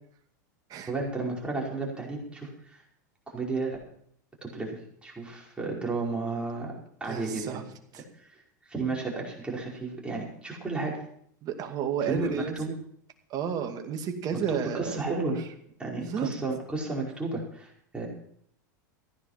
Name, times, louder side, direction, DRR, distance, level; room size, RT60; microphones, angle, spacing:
voice 1, 0.9-2.8 3.3-3.8 4.4-6.7 7.0-7.6 8.7-10.9 12.1-12.7 14.5-15.4 15.8-18.1, right 3 dB, 10° right, -2 dB, 5.2 m, -33 dB
voice 2, 7.1-7.6 7.9-8.0 11.4-12.7 13.3-15.3 16.0-16.3, right 7 dB, 40° right, 5 dB, 2.4 m, -32 dB
15.5 x 10.0 x 5.9 m, 0.66 s
hypercardioid pair, 110°, 10 cm